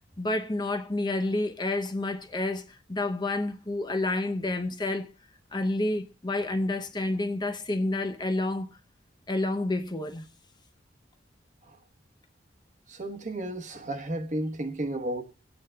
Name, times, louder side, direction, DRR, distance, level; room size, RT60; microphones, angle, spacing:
voice 1, 0.2-5.1 5.5-8.7 9.3-10.3, left 2 dB, 25° left, 0.7 m, -29 dB
voice 2, 12.9-15.2, right 1 dB, 40° right, 1.1 m, -33 dB
24.5 x 8.8 x 2.2 m
head